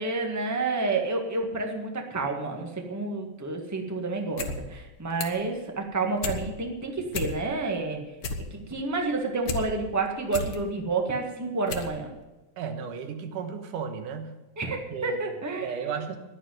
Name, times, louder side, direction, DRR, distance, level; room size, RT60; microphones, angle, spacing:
voice 1, 0.0-8.0 8.5-12.1 14.6-15.9, right 3 dB, 15° right, 2 dB, 0.7 m, -29 dB
sound 1, 4.2-4.6 4.8-5.5 5.8-6.4 6.8-6.9 7.1-7.7 8.0-9.6 10.0-10.6 11.1-11.2 11.7-11.9 12.2-12.3, left 4 dB, 65° left, 0.8 m, -33 dB
voice 2, 12.6-14.3 14.9-15.2 15.6-16.2, right 6 dB, 80° right, 7 dB, 2.9 m, -34 dB
11.0 x 9.9 x 9.3 m, 1.1 s
omnidirectional pair, 3.7 m